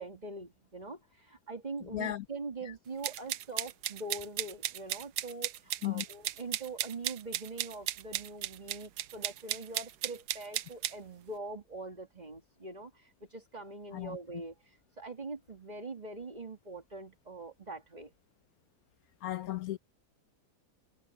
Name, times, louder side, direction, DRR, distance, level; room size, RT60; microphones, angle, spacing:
voice 1, 0.0-18.1, right 3 dB, 25° right, 2.0 m, -43 dB
voice 2, 1.9-2.2 2.6-2.7 5.8-6.0 13.9-14.2 19.2-19.8, left 14 dB, 75° left, 1.0 m, -35 dB
sound 1, 3.0-10.9, right 13 dB, 80° right, 1.2 m, -35 dB
omnidirectional pair, 1.7 m